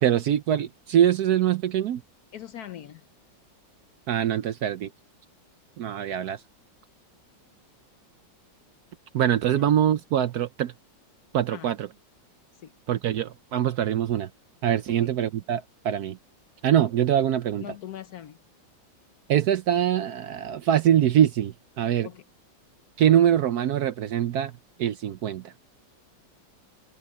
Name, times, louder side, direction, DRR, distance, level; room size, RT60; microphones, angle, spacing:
voice 1, 0.0-2.0 4.1-4.9 5.8-6.4 9.1-10.7 11.3-11.9 12.9-14.3 14.6-16.2 16.6-17.6 19.3-22.1 23.0-24.5 24.8-25.4, right 10 dB, 65° right, 1.0 m, -23 dB
voice 2, 2.3-3.0 9.5-9.7 11.5-11.7 12.6-12.7 15.0-15.1 17.6-18.4 22.0-22.2, left 11 dB, 65° left, 1.1 m, -41 dB
open air
omnidirectional pair, 2.1 m